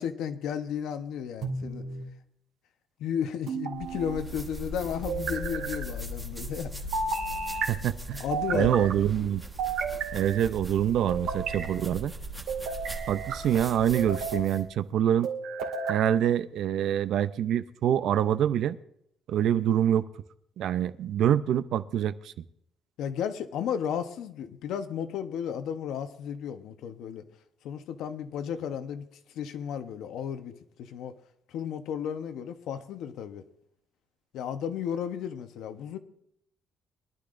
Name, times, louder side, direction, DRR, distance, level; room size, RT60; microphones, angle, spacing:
voice 1, 0.0-1.8 3.0-6.7 8.2-8.9 23.0-27.2 27.6-29.1 29.3-30.5 30.8-31.1 31.5-33.4 34.3-36.0, left 8 dB, 75° left, 1.0 m, -33 dB
sound 1, 1.4-2.1 3.5-4.2 5.1-5.8 6.9-7.7 8.3-9.0 9.6-10.4 11.1-11.7 12.5-13.4 13.9-14.5 15.2-16.0, right 5 dB, 75° right, 2.1 m, -32 dB
sound 2, 3.7-14.7, right 1 dB, 10° right, 1.3 m, -39 dB
voice 2, 7.7-8.2 8.5-9.4 10.1-12.1 13.1-15.3 15.9-18.8 19.3-20.1 20.6-22.3, right 10 dB, 60° right, 0.5 m, -25 dB
23.0 x 11.5 x 2.6 m
cardioid pair, 180°, 0 cm